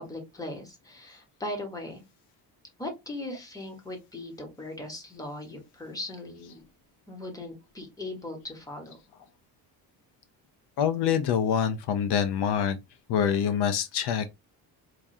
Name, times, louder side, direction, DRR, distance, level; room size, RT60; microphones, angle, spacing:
voice 1, 0.0-2.0 2.8-6.6 7.1-9.0, left 1 dB, 10° left, 1.1 m, -39 dB
voice 2, 10.8-12.8 13.1-14.3, left 8 dB, 70° left, 0.6 m, -25 dB
4.4 x 2.4 x 2.6 m
cardioid pair, 145°, 41 cm